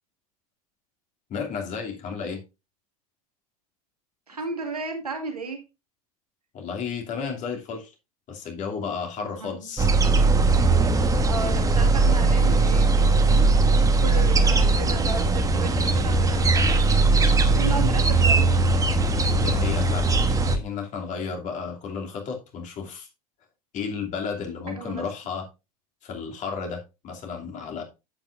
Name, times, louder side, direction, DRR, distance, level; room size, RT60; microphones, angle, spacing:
voice 1, 1.3-2.4 6.5-7.9 8.3-9.9 19.4-20.1 20.4-23.1 23.7-25.5 26.0-27.8, left 5 dB, 40° left, 2.8 m, -33 dB
voice 2, 4.3-5.6 9.2-9.6 11.0-13.8 14.0-17.0 17.3-18.5 24.7-25.0, right 4 dB, 85° right, 2.3 m, -34 dB
sound 1, 9.8-20.6, right 3 dB, 15° right, 1.2 m, -20 dB
10.5 x 8.2 x 2.5 m
figure-of-eight pair, 80°, 19 cm